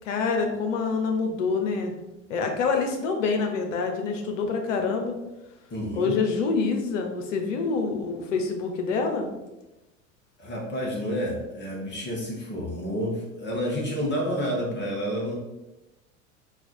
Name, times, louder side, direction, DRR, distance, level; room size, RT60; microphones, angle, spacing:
voice 1, 0.0-1.9 2.3-5.2 6.0-9.3, left 4 dB, 70° left, 4 dB, 0.9 m, -26 dB
voice 2, 5.7-6.2 10.4-15.3, equal, 30° left, -2 dB, 1.1 m, -29 dB
4.1 x 2.4 x 4.3 m, 1.0 s
hypercardioid pair, 80°, 39 cm